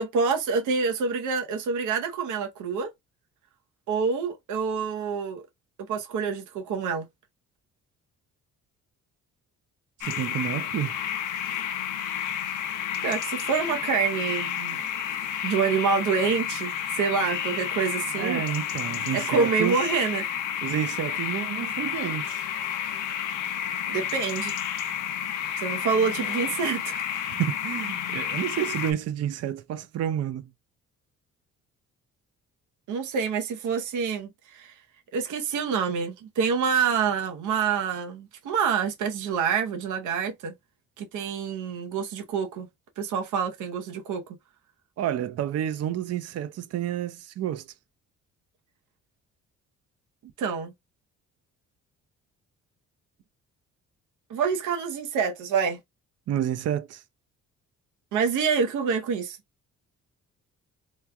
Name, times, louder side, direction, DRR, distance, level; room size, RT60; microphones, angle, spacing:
voice 1, 0.0-2.9 3.9-5.4 5.9-7.1 13.0-14.8 15.4-18.4 19.1-20.3 23.9-24.5 25.6-27.2 32.9-34.7 35.1-40.5 41.0-42.7 43.0-44.2 50.4-50.7 54.3-55.8 58.1-59.4, right 6 dB, 80° right, 0.9 m, -27 dB
sound 1, 10.0-28.9, left 9 dB, 90° left, 0.7 m, -31 dB
voice 2, 10.0-11.0 18.2-19.8 20.6-22.4 27.3-30.5 45.0-47.6 56.3-57.0, right 10 dB, 55° right, 0.5 m, -29 dB
3.1 x 2.2 x 3.5 m
cardioid pair, 90°, 30 cm